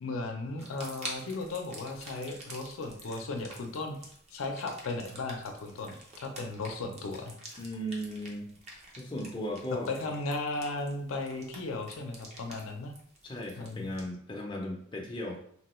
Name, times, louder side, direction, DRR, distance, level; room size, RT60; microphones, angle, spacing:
voice 1, 0.0-4.0 4.3-5.9 6.2-7.4 9.9-12.9 13.6-13.9, left 3 dB, 85° left, 3 dB, 0.5 m, -36 dB
sound 1, 0.6-14.0, right 1 dB, 35° right, 0.6 m, -48 dB
voice 2, 7.6-8.5 9.0-9.9 13.2-15.4, equal, 25° left, -1 dB, 0.5 m, -36 dB
2.9 x 2.2 x 3.0 m, 0.63 s
head